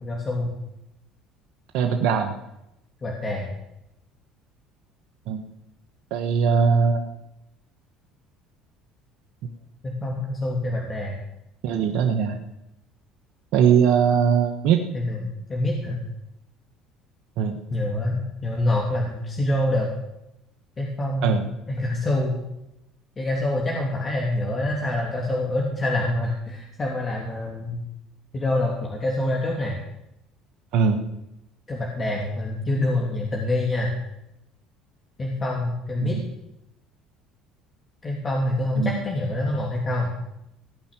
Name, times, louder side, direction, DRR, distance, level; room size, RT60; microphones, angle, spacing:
voice 1, 0.0-0.5 3.0-3.5 9.8-11.2 14.9-16.0 17.7-19.9 20.8-21.3 21.7-22.4 23.2-27.9 28.3-29.8 31.7-33.9 35.2-36.2 38.0-40.1, left 1 dB, 30° left, -1 dB, 2.9 m, -26 dB
voice 2, 1.7-2.3 5.3-5.4 6.1-7.0 11.6-12.4 13.5-14.8 17.4-17.6 21.2-21.5 30.7-31.0 36.0-36.3 38.8-39.0, right 6 dB, 70° right, 4 dB, 1.4 m, -21 dB
17.5 x 5.8 x 9.1 m, 0.88 s
supercardioid pair, 75°, 0 cm